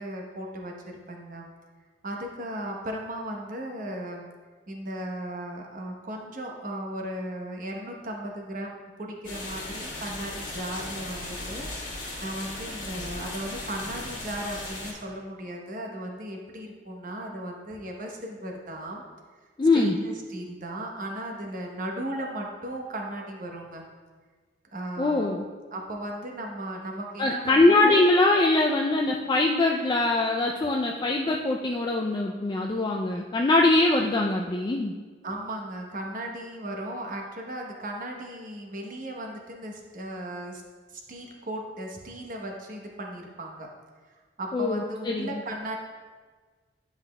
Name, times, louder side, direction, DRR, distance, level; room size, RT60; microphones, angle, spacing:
voice 1, 0.0-1.5 2.0-4.3 4.7-19.0 19.7-23.9 24.7-25.4 25.7-28.0 35.2-40.6 40.9-43.7 44.0-45.8, right 1 dB, 45° right, 1 dB, 0.9 m, -36 dB
sound 1, 9.2-14.9, left 2 dB, 45° left, 1.8 m, -37 dB
voice 2, 19.6-20.0 25.0-25.4 27.2-34.9 44.5-45.3, left 2 dB, 20° left, 0 dB, 0.3 m, -22 dB
10.5 x 5.7 x 2.2 m, 1.5 s
head